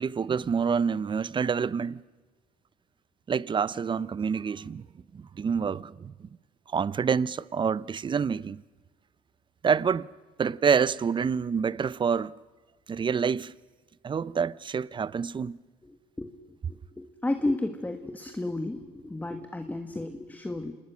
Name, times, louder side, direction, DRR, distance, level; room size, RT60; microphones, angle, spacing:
voice 1, 0.0-2.0 3.3-4.9 5.1-6.1 6.7-8.6 9.6-10.1 10.4-12.3 12.9-13.5 14.0-15.6, right 6 dB, 30° right, 0.6 m, -27 dB
voice 2, 15.8-16.3 16.7-20.7, left 2 dB, 10° left, 1.5 m, -33 dB
27.5 x 20.5 x 6.3 m
cardioid pair, 110°, 17 cm